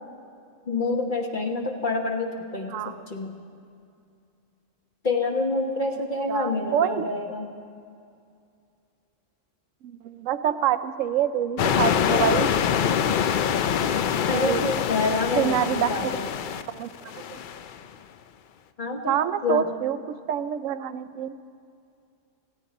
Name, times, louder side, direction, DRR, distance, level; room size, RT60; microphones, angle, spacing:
voice 1, 0.7-3.4 5.0-7.5 14.3-16.2 18.8-19.2 19.4-19.7, left 3 dB, 40° left, 2 dB, 1.1 m, -27 dB
voice 2, 6.3-7.1 9.8-12.5 14.3-14.6 15.4-15.9 16.7-17.4 19.1-21.4, right 9 dB, 80° right, 12 dB, 1.0 m, -26 dB
sound 1, 11.6-17.8, left 8 dB, 65° left, 0.5 m, -25 dB
19.5 x 15.0 x 4.0 m, 2.4 s
omnidirectional pair, 1.3 m